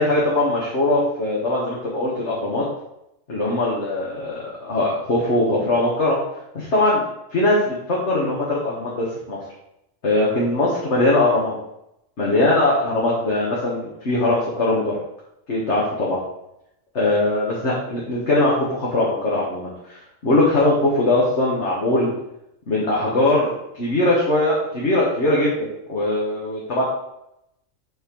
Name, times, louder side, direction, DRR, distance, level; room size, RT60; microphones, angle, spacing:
voice 1, 0.0-2.6 3.3-6.2 6.5-7.0 7.3-9.4 10.0-11.6 12.2-15.0 15.5-16.2 16.9-22.1 22.7-26.8, left 2 dB, 55° left, -5 dB, 1.7 m, -21 dB
7.2 x 4.4 x 5.3 m, 0.84 s
omnidirectional pair, 1.4 m